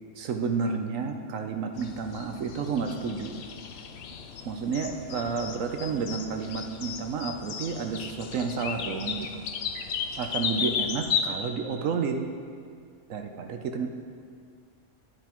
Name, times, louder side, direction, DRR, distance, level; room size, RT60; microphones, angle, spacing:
voice 1, 0.2-3.4 4.5-9.4 10.2-12.3 13.1-13.9, right 5 dB, 70° right, 5 dB, 1.0 m, -31 dB
sound 1, 1.7-11.3, left 7 dB, 60° left, 0.7 m, -34 dB
11.5 x 9.1 x 3.0 m, 2.2 s
omnidirectional pair, 1.5 m